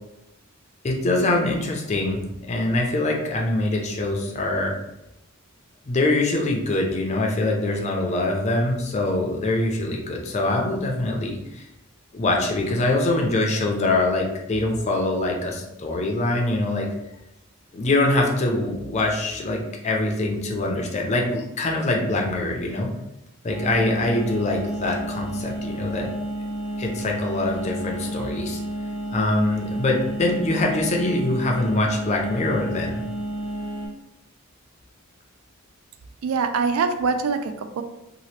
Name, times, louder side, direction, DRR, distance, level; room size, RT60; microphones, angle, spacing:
voice 1, 0.8-4.7 5.9-11.7 12.1-16.9 17.7-22.9 23.4-26.1 26.8-28.6 29.1-33.0, left 2 dB, 30° left, 1 dB, 0.4 m, -24 dB
sound 1, 23.5-33.9, right 1 dB, 60° right, 1.2 m, -31 dB
voice 2, 36.2-37.8, right 5 dB, 75° right, 8 dB, 0.3 m, -24 dB
2.8 x 2.4 x 3.1 m, 0.89 s
head